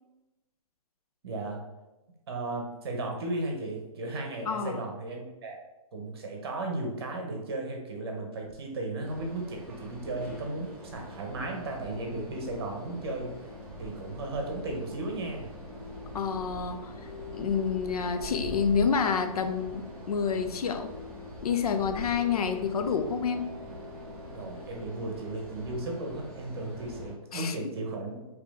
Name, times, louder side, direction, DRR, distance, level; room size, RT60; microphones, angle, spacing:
voice 1, 1.2-1.6 2.3-5.6 5.9-13.4 13.8-15.5 24.3-28.3, right 2 dB, 40° right, 2 dB, 0.9 m, -35 dB
voice 2, 4.5-4.8 16.1-16.9 17.3-20.9 21.4-23.5 27.3-27.6, left 6 dB, 80° left, 8 dB, 0.6 m, -28 dB
sound 1, 9.0-27.1, equal, 10° right, 0.7 m, -44 dB
sound 2, 15.7-25.8, left 5 dB, 10° left, 1.0 m, -46 dB
4.2 x 2.9 x 3.5 m, 1.0 s
hypercardioid pair, 175°, 19 cm